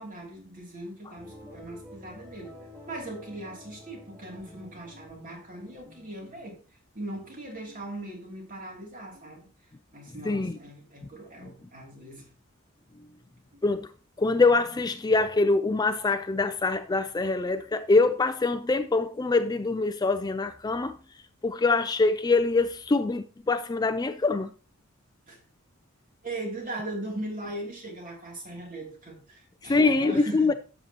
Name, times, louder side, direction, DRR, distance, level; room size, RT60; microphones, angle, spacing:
voice 1, 0.0-2.5 2.9-6.6 6.9-9.5 9.9-12.3 25.3-25.4 26.2-30.5, right 1 dB, 40° right, 2.7 m, -39 dB
sound 1, 1.1-6.2, left 1 dB, 15° right, 2.9 m, -49 dB
voice 2, 10.3-10.6 13.6-13.9 14.2-21.0 21.4-24.5 29.6-30.5, left 3 dB, 20° left, 0.3 m, -24 dB
12.0 x 7.4 x 2.9 m
head